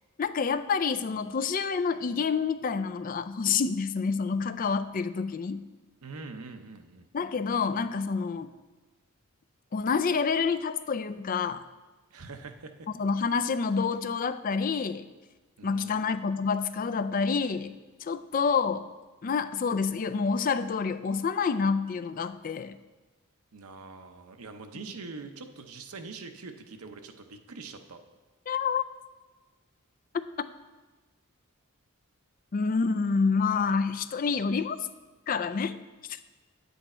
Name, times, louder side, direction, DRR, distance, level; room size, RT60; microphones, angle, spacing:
voice 1, 0.2-5.6 7.1-8.5 9.7-11.6 13.0-15.0 15.6-17.7 18.0-18.8 19.2-22.8 28.5-28.8 32.5-34.8 35.3-35.8 36.1-36.2, left 5 dB, 40° left, 12 dB, 0.4 m, -28 dB
voice 2, 6.0-7.1 12.1-12.9 15.6-16.0 23.5-28.0, right 4 dB, 80° right, 6 dB, 0.8 m, -44 dB
8.9 x 8.0 x 4.3 m, 1.2 s
head